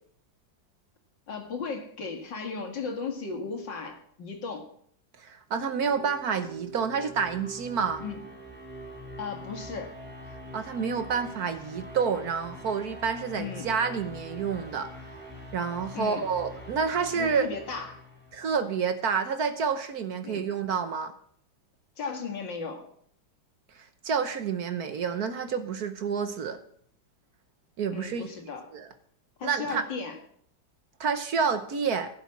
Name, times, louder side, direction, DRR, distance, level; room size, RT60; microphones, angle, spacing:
voice 1, 1.3-4.7 8.0-8.2 9.2-9.9 13.4-13.7 15.9-16.2 17.2-18.0 20.2-20.5 22.0-22.9 27.9-28.7 29.4-30.2, left 5 dB, 70° left, 3 dB, 2.7 m, -36 dB
voice 2, 5.2-8.0 10.5-14.9 15.5-17.5 18.3-21.1 24.0-26.6 27.8-28.3 28.7-28.9 29.4-29.8 31.0-32.1, right 6 dB, 60° right, 8 dB, 1.3 m, -29 dB
sound 1, 5.6-18.7, equal, 5° left, 4.0 m, -44 dB
16.0 x 7.2 x 6.0 m, 0.63 s
omnidirectional pair, 2.0 m